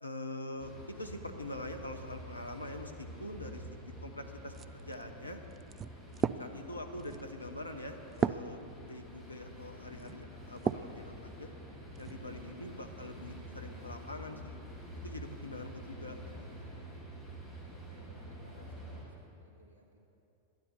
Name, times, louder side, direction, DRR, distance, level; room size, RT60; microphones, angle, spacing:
voice 1, 0.0-5.4 6.4-8.6 8.8-11.5 12.0-14.6 15.0-16.2, left 1 dB, 85° left, 5 dB, 1.0 m, -44 dB
sound 1, 0.6-19.0, equal, 5° left, 3.8 m, -48 dB
sound 2, 4.5-11.0 11.5-12.2, right 7 dB, 25° right, 0.3 m, -38 dB
voice 2, 15.8-16.1 17.7-19.2 19.4-20.0, right 3 dB, 70° right, 0 dB, 1.9 m, -60 dB
11.5 x 10.5 x 6.8 m, 2.8 s
figure-of-eight pair, 90°, 0 cm